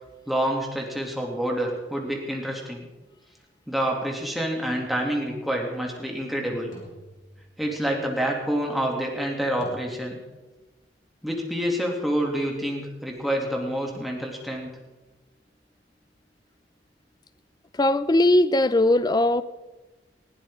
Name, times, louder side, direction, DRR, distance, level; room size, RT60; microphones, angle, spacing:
voice 1, 0.3-2.8 3.7-6.7 7.6-10.2 11.2-14.7, equal, ahead, -1 dB, 2.8 m, -27 dB
sound 1, 6.7-7.9 9.6-9.7, equal, 45° left, 4.6 m, -49 dB
voice 2, 17.7-19.4, left 1 dB, 25° left, 15 dB, 0.5 m, -19 dB
20.0 x 15.5 x 3.8 m, 1.2 s
head